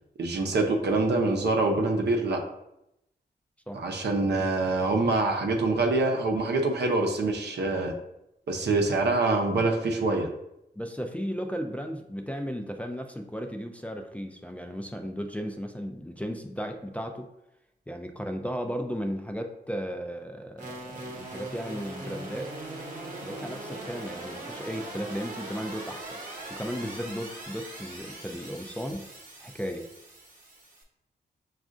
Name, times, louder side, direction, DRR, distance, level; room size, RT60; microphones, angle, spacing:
voice 1, 0.2-2.4 3.7-7.9 8.5-10.3, right 2 dB, 75° right, 2 dB, 0.7 m, -25 dB
voice 2, 10.8-17.3 17.9-22.5 23.2-26.1 26.5-29.0 29.4-29.9, equal, 10° left, 3 dB, 0.3 m, -35 dB
sound 1, 20.6-30.8, right 2 dB, 45° right, 0.9 m, -41 dB
6.1 x 2.4 x 2.5 m, 0.85 s
wide cardioid pair, 85°, 18 cm